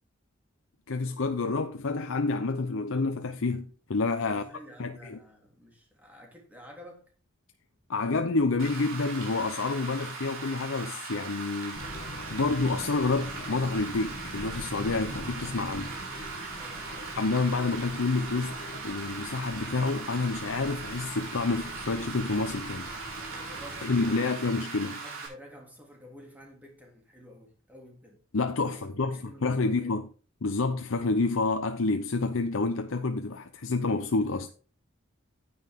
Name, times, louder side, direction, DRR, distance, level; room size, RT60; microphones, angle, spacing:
voice 1, 0.9-4.4 4.8-5.2 7.9-16.0 17.2-22.9 23.8-25.0 28.3-29.2 29.4-30.1 30.4-34.5, left 3 dB, 80° left, 0.7 m, -28 dB
voice 2, 4.2-7.1 16.6-17.4 23.3-24.4 24.8-28.2 28.5-29.9, equal, 10° right, 3.0 m, -51 dB
Rain, 8.6-25.3, right 4 dB, 85° right, 4.8 m, -39 dB
sound 1, 11.7-24.2, left 1 dB, 40° left, 2.3 m, -43 dB
9.5 x 9.4 x 3.6 m
head